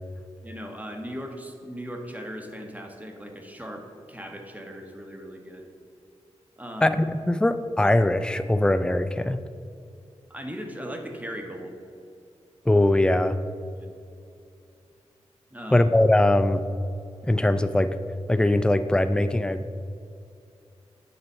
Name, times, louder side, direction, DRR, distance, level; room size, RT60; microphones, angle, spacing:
voice 1, 0.4-5.7 6.6-7.0 10.3-11.8 13.8-13.9 15.5-15.9, equal, 10° right, 3 dB, 1.2 m, -38 dB
voice 2, 6.8-9.4 12.7-13.4 15.7-16.6 17.3-18.0 18.3-19.7, left 1 dB, 5° left, 11 dB, 0.4 m, -21 dB
8.7 x 4.0 x 5.5 m, 2.5 s
cardioid pair, 40°, 12 cm